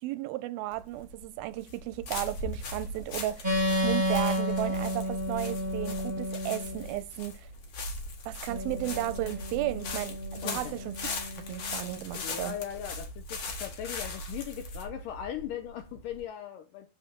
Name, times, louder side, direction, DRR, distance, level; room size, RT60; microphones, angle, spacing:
voice 1, 0.0-3.6 3.8-7.5 8.3-11.0 11.5-12.6, right 16 dB, 80° right, 2.2 m, -34 dB
sound 1, 0.7-16.2, left 2 dB, 50° left, 2.3 m, -39 dB
sound 2, 3.4-6.9 8.5-12.1, equal, 15° right, 2.3 m, -32 dB
voice 2, 10.4-10.7 12.1-16.9, left 10 dB, 75° left, 2.1 m, -39 dB
7.1 x 5.6 x 6.0 m
omnidirectional pair, 4.5 m